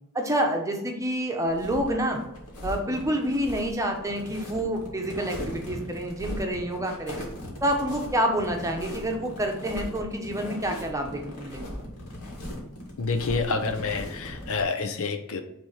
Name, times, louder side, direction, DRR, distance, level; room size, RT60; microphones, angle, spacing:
voice 1, 0.1-2.2 2.6-7.2 7.6-11.7, equal, 15° right, 2 dB, 0.9 m, -28 dB
sound 1, 1.5-14.6, equal, 85° left, 2.1 m, -38 dB
voice 2, 13.0-15.4, left 4 dB, 65° left, 8 dB, 0.7 m, -28 dB
6.2 x 3.4 x 5.6 m, 0.85 s
head